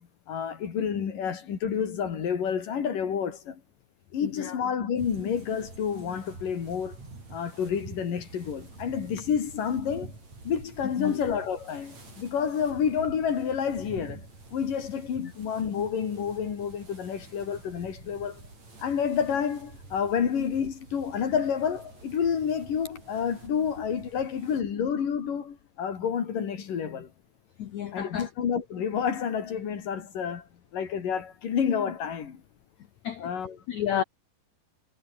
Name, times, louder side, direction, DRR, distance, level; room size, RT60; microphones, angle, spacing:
voice 1, 0.0-3.6 4.1-7.0 7.3-10.2 10.4-18.4 18.8-27.1 27.9-30.5 30.7-32.4 33.2-33.6, left 7 dB, 55° left, 4.3 m, -29 dB
voice 2, 4.2-4.6 11.0-11.2 15.2-15.3 27.6-28.3 33.0-33.3 33.7-34.0, left 10 dB, 70° left, 1.7 m, -31 dB
sound 1, 5.0-24.6, right 3 dB, 40° right, 8.6 m, -48 dB
omnidirectional pair, 5.0 m